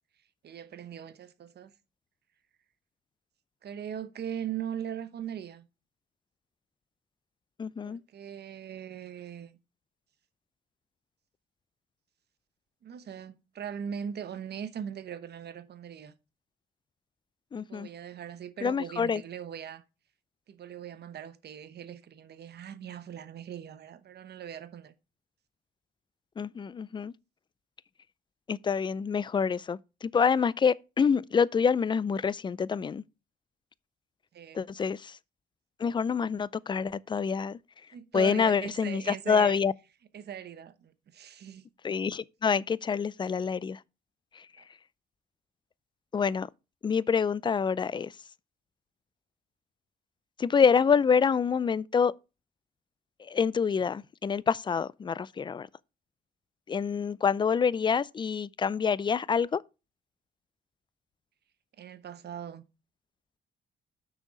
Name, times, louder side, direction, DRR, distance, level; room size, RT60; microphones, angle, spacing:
voice 1, 0.4-1.7 3.6-5.7 7.8-9.6 12.8-16.1 17.6-19.8 20.5-24.9 34.3-34.6 37.9-39.6 40.1-41.6 44.6-44.7 61.8-62.6, right 9 dB, 55° right, 1.0 m, -40 dB
voice 2, 7.6-8.0 17.5-17.9 18.6-19.2 26.4-27.1 28.5-33.0 34.5-35.2 35.8-37.6 38.1-39.7 41.8-43.8 46.1-46.5 46.8-48.1 50.4-52.1 53.2-55.7 56.7-59.6, left 6 dB, 25° left, 0.4 m, -27 dB
6.4 x 6.1 x 5.1 m
cardioid pair, 90°, 20 cm